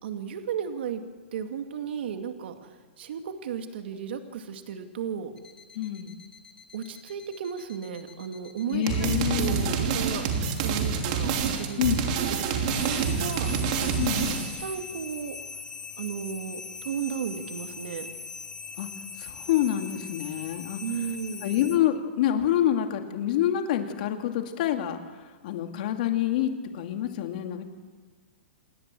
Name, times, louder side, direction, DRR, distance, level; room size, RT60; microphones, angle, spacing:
voice 1, 0.0-1.0 1.3-5.3 6.7-10.3 10.5-11.9 12.5-13.5 14.6-15.4 16.0-18.1 20.8-21.5, right 7 dB, 60° right, 6 dB, 2.3 m, -34 dB
sound 1, 5.4-21.8, left 5 dB, 10° left, 1.3 m, -42 dB
voice 2, 5.7-6.2 8.7-9.6 11.8-12.0 14.0-14.5 18.8-18.9 19.2-20.8 21.4-25.0 25.4-27.6, left 11 dB, 40° left, 5 dB, 2.4 m, -27 dB
sound 2, 8.9-14.6, right 6 dB, 35° right, 3.0 m, -27 dB
28.0 x 20.5 x 7.7 m, 1.4 s
hypercardioid pair, 175°, 7 cm